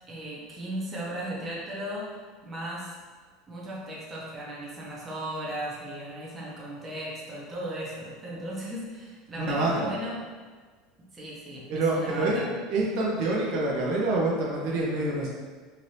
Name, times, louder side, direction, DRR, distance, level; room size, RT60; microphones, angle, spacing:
voice 1, 0.1-3.0 3.5-10.2 11.0-12.5, right 1 dB, 20° right, -5 dB, 0.7 m, -36 dB
voice 2, 9.4-9.9 11.7-12.4 12.7-15.3, right 2 dB, 60° right, -3 dB, 0.6 m, -26 dB
2.8 x 2.6 x 3.2 m, 1.5 s
supercardioid pair, 145°, 0 cm